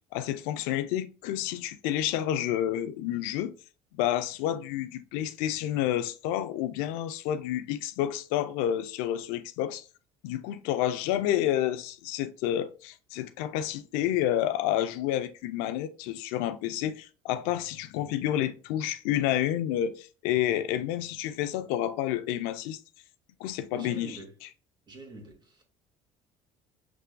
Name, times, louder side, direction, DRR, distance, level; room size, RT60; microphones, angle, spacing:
voice 1, 0.1-3.5 4.0-9.8 10.2-22.8 23.4-24.2, left 12 dB, 85° left, 0.5 m, -29 dB
voice 2, 23.7-24.3 24.9-25.6, right 2 dB, 30° right, 1.9 m, -44 dB
7.1 x 3.3 x 2.2 m
supercardioid pair, 95°, 15 cm